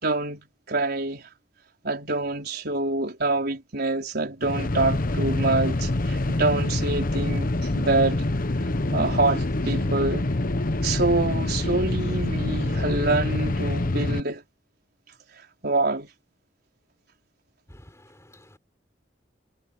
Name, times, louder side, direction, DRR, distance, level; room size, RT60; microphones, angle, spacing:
voice 1, 0.0-1.3 1.8-8.2 8.9-10.3 10.8-14.4 15.6-16.1, right 2 dB, 60° right, 4.6 m, -26 dB
sound 1, 4.4-14.2, left 2 dB, 50° left, 1.1 m, -26 dB
voice 2, 17.7-18.6, left 1 dB, 15° left, 5.9 m, -51 dB
head